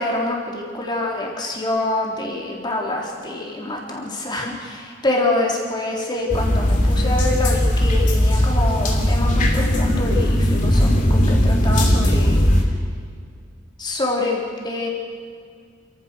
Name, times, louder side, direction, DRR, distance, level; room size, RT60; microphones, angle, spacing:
voice 1, 0.0-12.4 13.8-14.9, left 2 dB, 25° left, -1 dB, 3.8 m, -26 dB
sound 1, 6.3-12.6, equal, 45° left, 3.0 m, -18 dB
28.5 x 14.5 x 6.6 m, 2.1 s
head